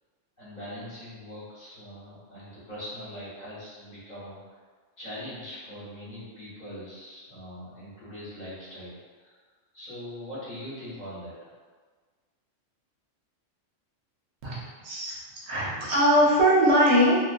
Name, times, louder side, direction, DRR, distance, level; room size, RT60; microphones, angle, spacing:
voice 1, 0.4-4.6 5.0-9.4 9.7-11.5, equal, 40° left, -10 dB, 0.9 m, -41 dB
voice 2, 14.4-15.2 15.5-17.2, equal, 65° right, -5 dB, 0.8 m, -21 dB
2.3 x 2.2 x 2.4 m, 1.5 s
omnidirectional pair, 1.3 m